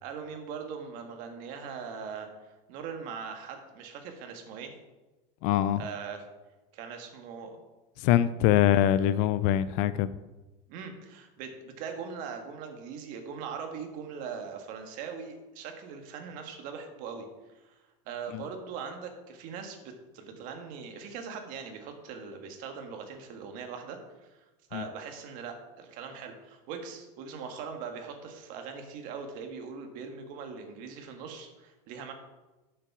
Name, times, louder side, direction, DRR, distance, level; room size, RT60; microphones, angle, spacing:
voice 1, 0.0-4.7 5.8-6.2 6.7-7.6 10.7-17.8 18.0-24.4 24.7-32.1, right 6 dB, 45° right, 5 dB, 1.6 m, -41 dB
voice 2, 5.4-5.8 8.0-10.1 18.3-18.4 24.7-24.9, left 11 dB, 45° left, 15 dB, 0.4 m, -24 dB
7.5 x 7.0 x 5.9 m, 1.1 s
supercardioid pair, 165°, 18 cm